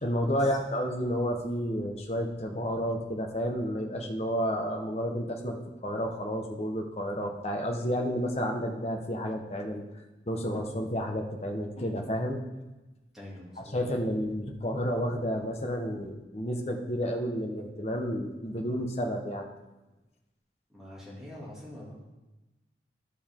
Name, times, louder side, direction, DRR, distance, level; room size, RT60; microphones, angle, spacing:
voice 1, 0.0-5.6 5.8-9.8 10.3-12.4 13.7-19.5, equal, 35° left, 2 dB, 1.0 m, -31 dB
voice 2, 13.1-13.8 20.7-22.0, left 1 dB, 5° right, -7 dB, 2.5 m, -45 dB
12.0 x 6.9 x 3.7 m, 1.1 s
head